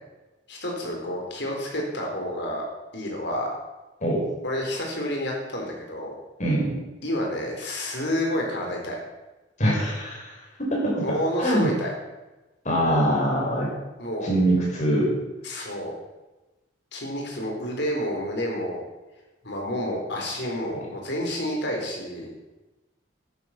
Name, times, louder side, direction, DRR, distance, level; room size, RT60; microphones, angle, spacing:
voice 1, 0.5-2.6 2.9-3.5 4.4-6.1 7.0-9.0 10.9-11.9 14.0-14.3 15.4-15.9 16.9-18.8 19.4-22.3, equal, 60° left, 0 dB, 4.1 m, -29 dB
voice 2, 6.4-6.8 9.6-11.0 11.4-11.7 12.6-13.7 14.2-15.1, right 1 dB, 40° left, -4 dB, 5.6 m, -23 dB
11.0 x 9.9 x 7.3 m, 1.1 s
head